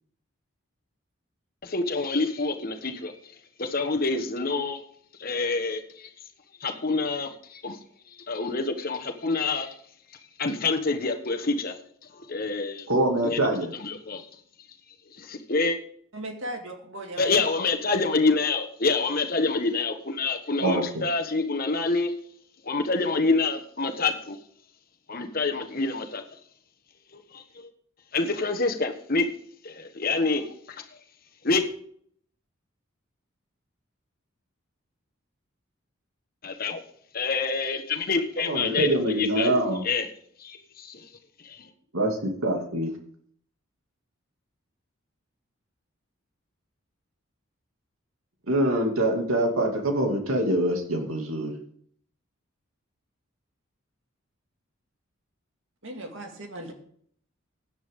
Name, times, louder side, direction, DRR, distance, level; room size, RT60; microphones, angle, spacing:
voice 1, 1.6-3.1 3.6-4.8 5.2-6.1 6.6-7.8 8.3-9.7 10.4-11.7 12.1-12.9 13.3-13.5 13.7-14.3 15.2-15.8 17.2-22.1 22.6-24.4 25.1-26.2 27.1-27.7 28.1-29.3 29.6-30.5 31.4-31.6 36.4-36.8 37.1-40.0 40.4-41.1 41.4-41.7, left 3 dB, 45° left, 5 dB, 1.3 m, -27 dB
voice 2, 12.9-13.7 20.6-21.0 38.4-39.8 41.9-42.9 48.5-51.5, right 1 dB, 90° right, 2 dB, 2.5 m, -24 dB
voice 3, 16.1-17.3 55.8-56.7, right 1 dB, 70° right, 3 dB, 2.2 m, -37 dB
16.5 x 9.9 x 3.8 m, 0.64 s
head